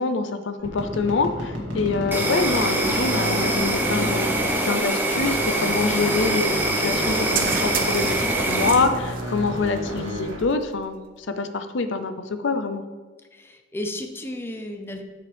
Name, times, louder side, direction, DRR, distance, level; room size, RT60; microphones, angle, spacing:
voice 1, 0.0-12.8, left 4 dB, 65° left, 9 dB, 0.6 m, -26 dB
sound 1, 0.6-4.8 5.1-10.5, equal, 80° right, 2.1 m, -31 dB
Insect, 2.1-8.7, right 1 dB, 10° right, 0.9 m, -24 dB
sound 2, 3.3-11.2, right 6 dB, 45° right, 0.8 m, -36 dB
voice 2, 13.3-15.0, left 1 dB, 10° left, 5 dB, 0.6 m, -34 dB
8.8 x 6.9 x 3.5 m, 1.3 s
head